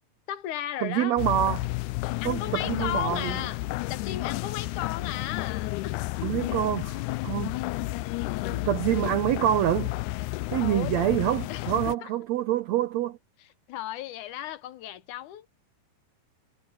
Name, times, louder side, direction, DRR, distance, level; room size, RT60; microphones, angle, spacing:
voice 1, 0.3-1.2 2.2-3.6 3.9-6.0 10.6-10.9 11.5-11.7 12.0-12.1 13.7-15.5, left 12 dB, 70° left, 2.1 m, -35 dB
voice 2, 0.8-1.7 2.2-3.4 6.2-7.6 8.5-9.9 10.5-13.2, right 12 dB, 80° right, 1.5 m, -26 dB
sound 1, 1.2-11.9, left 19 dB, 85° left, 1.7 m, -31 dB
omnidirectional pair, 4.0 m